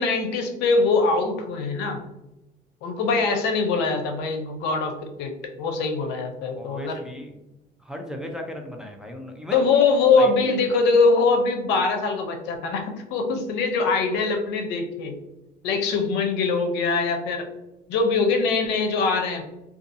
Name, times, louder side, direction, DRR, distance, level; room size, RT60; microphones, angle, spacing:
voice 1, 0.0-2.1 2.8-5.3 5.6-6.9 9.5-15.2 15.6-17.5 17.9-19.4, left 4 dB, 90° left, 5 dB, 0.5 m, -22 dB
voice 2, 6.6-7.5 7.8-9.6 10.2-10.3, equal, 5° right, 2 dB, 0.5 m, -36 dB
2.6 x 2.4 x 2.6 m, 0.96 s
cardioid pair, 110°, 17 cm